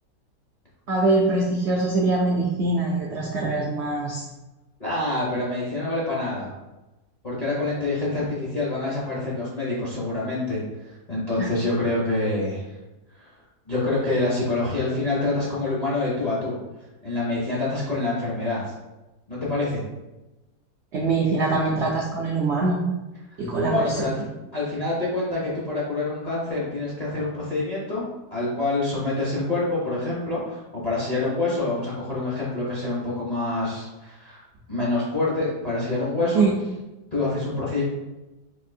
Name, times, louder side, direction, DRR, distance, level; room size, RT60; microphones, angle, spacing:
voice 1, 0.9-4.2 11.4-11.5 20.9-22.8 23.4-24.1 36.3-36.5, right 3 dB, 75° right, -3 dB, 0.6 m, -23 dB
voice 2, 4.8-6.5 7.2-12.6 13.2-13.3 13.7-16.5 17.0-18.7 19.3-19.8 23.7-24.1 24.5-28.0 28.3-34.4 34.7-36.4 37.1-37.8, left 2 dB, 40° left, -7 dB, 0.6 m, -26 dB
4.1 x 2.6 x 2.6 m, 1.0 s
omnidirectional pair, 1.7 m